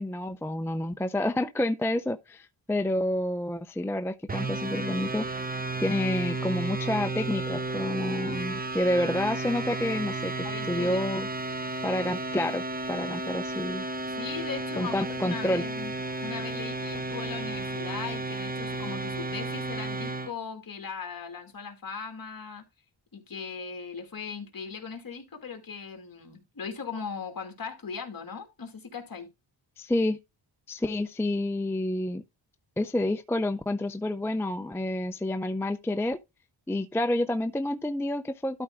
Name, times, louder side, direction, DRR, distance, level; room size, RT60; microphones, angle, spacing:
voice 1, 0.0-5.3 5.8-11.3 11.8-13.9 14.8-15.7 29.8-30.2 30.7-32.2 32.8-36.2 36.7-38.6, left 1 dB, 5° left, 0.4 m, -29 dB
sound 1, 4.3-20.3, right 2 dB, 20° right, 0.8 m, -33 dB
voice 2, 10.4-11.1 14.1-15.9 16.2-22.6 23.1-29.3, left 5 dB, 50° left, 2.4 m, -39 dB
12.5 x 4.3 x 3.6 m
wide cardioid pair, 95°, 45 cm